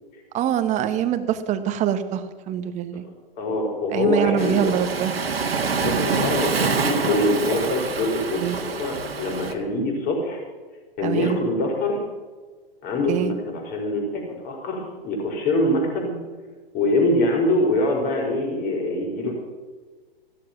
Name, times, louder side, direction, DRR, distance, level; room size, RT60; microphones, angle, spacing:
voice 1, 0.3-3.0 3.9-5.3 8.4-8.6 11.0-11.4 13.1-13.3, right 10 dB, 25° right, 10 dB, 1.2 m, -24 dB
voice 2, 3.0-4.8 5.8-10.4 11.0-12.0 12.8-16.2 16.7-19.3, left 1 dB, 30° left, 0 dB, 5.2 m, -24 dB
Waves surf, 4.4-9.5, right 5 dB, 85° right, 2.0 m, -26 dB
15.5 x 12.5 x 6.0 m, 1.4 s
hypercardioid pair, 125°, 29 cm